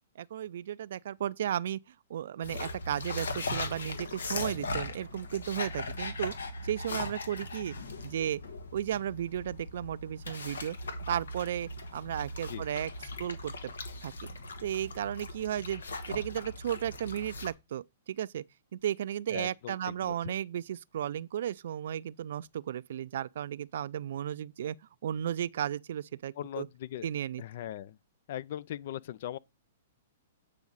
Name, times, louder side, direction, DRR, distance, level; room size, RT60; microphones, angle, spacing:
voice 1, 0.2-1.8 2.1-6.3 6.6-7.7 8.0-8.4 8.7-10.8 11.1-12.9 13.2-13.7 14.0-14.3 14.6-15.8 16.1-18.4 18.7-24.8 25.0-26.7 27.0-27.4, right 10 dB, 65° right, 0.3 m, -34 dB
sound 1, 2.4-17.5, left 2 dB, 85° left, 1.4 m, -39 dB
voice 2, 19.3-20.3 26.4-27.1 27.4-28.0 28.3-29.4, left 11 dB, 60° left, 0.4 m, -40 dB
8.6 x 4.9 x 4.0 m
hypercardioid pair, 130°, 0 cm